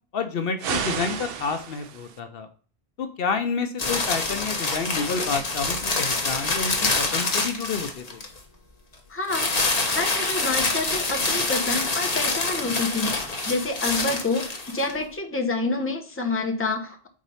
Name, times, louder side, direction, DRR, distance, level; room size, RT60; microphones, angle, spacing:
voice 1, 0.1-2.5 3.0-8.2, left 5 dB, 65° left, 8 dB, 0.8 m, -29 dB
sound 1, 0.6-2.2, right 7 dB, 65° right, 0.9 m, -31 dB
sound 2, 3.8-8.4 9.3-14.9, left 3 dB, 40° left, 1.1 m, -26 dB
voice 2, 9.1-9.5 9.8-17.1, left 3 dB, 15° left, 2 dB, 0.9 m, -28 dB
5.0 x 4.1 x 5.5 m, 0.42 s
omnidirectional pair, 1.1 m